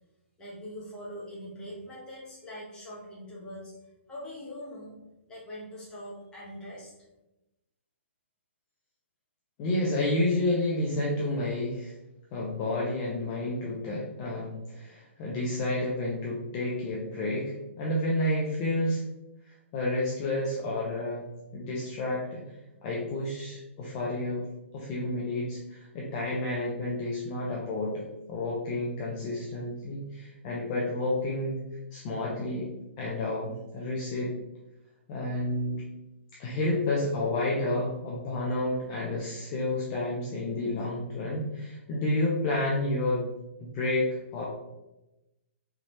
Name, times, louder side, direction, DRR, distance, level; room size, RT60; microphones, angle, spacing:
voice 1, 0.4-3.7 4.1-5.0 5.3-6.9, equal, 10° left, -7 dB, 1.5 m, -42 dB
voice 2, 9.6-11.9 12.3-19.0 19.4-21.2 21.5-22.4 22.8-24.4 24.7-31.6 31.9-32.7 33.0-34.3 35.1-35.8 36.4-43.3 43.6-44.4, left 1 dB, 35° left, -4 dB, 0.8 m, -30 dB
3.7 x 3.6 x 3.2 m, 0.96 s
hypercardioid pair, 145°, 7 cm